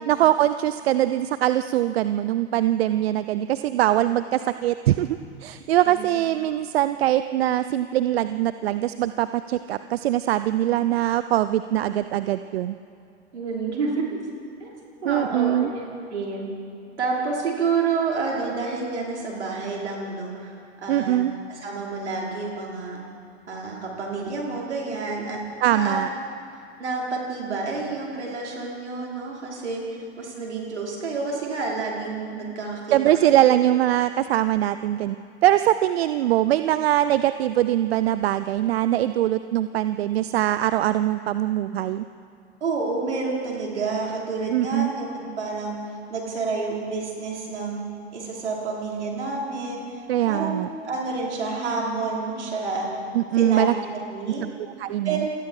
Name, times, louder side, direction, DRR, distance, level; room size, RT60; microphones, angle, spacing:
voice 1, 0.1-5.1 5.4-12.7 15.0-15.7 20.9-21.3 25.6-26.1 32.9-35.2 35.4-42.0 44.5-44.9 50.1-50.7 53.1-53.7 54.4-54.5 54.8-55.3, right 13 dB, 60° right, 13 dB, 0.7 m, -22 dB
voice 2, 13.3-14.2 14.6-14.7 15.0-16.5 17.0-21.2 21.5-23.0 23.5-26.0 26.8-33.0 33.5-33.6 42.6-45.8 46.1-47.9 48.1-50.0 50.3-52.9 53.4-53.7 54.1-54.4 55.0-55.3, right 4 dB, 80° right, -3 dB, 5.3 m, -29 dB
27.5 x 19.0 x 4.9 m, 2.5 s
figure-of-eight pair, 90°, 34 cm